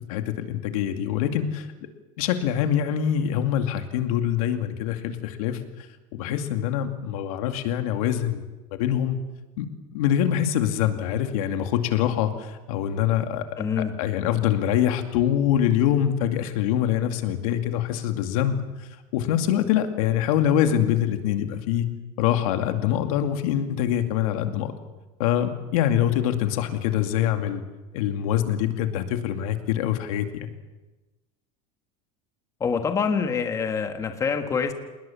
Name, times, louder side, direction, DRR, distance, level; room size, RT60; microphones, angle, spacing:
voice 1, 0.1-1.7 2.2-5.6 6.1-8.4 8.8-9.2 9.6-9.7 9.9-13.4 13.8-18.6 19.1-21.9 22.2-24.7 25.2-27.6 27.9-30.3, left 10 dB, 75° left, 7 dB, 2.5 m, -24 dB
voice 2, 13.6-13.9 32.6-34.7, left 6 dB, 15° left, 6 dB, 1.5 m, -25 dB
28.5 x 19.5 x 7.3 m, 1.2 s
cardioid pair, 170°, 18 cm